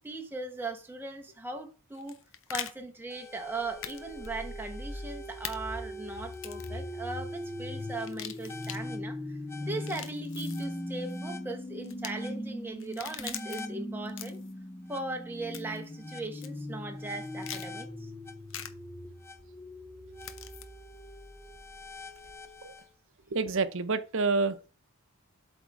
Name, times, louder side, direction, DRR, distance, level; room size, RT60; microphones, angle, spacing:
voice 1, 0.0-2.2 2.5-14.4 14.9-18.1 19.0-19.1, right 2 dB, 10° right, 1.0 m, -39 dB
sound 1, 1.9-2.7 3.8-4.3 5.4-5.6 6.3-6.8 8.0-8.8 9.7-10.7 11.8-12.1 12.8-13.6 14.1-14.5 15.5-15.9 16.4-16.5 17.4-17.7 18.5-18.7 20.2-20.6, left 10 dB, 60° left, 0.8 m, -41 dB
sound 2, 3.1-22.8, left 1 dB, 10° left, 0.5 m, -40 dB
voice 2, 23.3-24.6, right 4 dB, 60° right, 0.7 m, -28 dB
8.0 x 3.6 x 4.6 m
head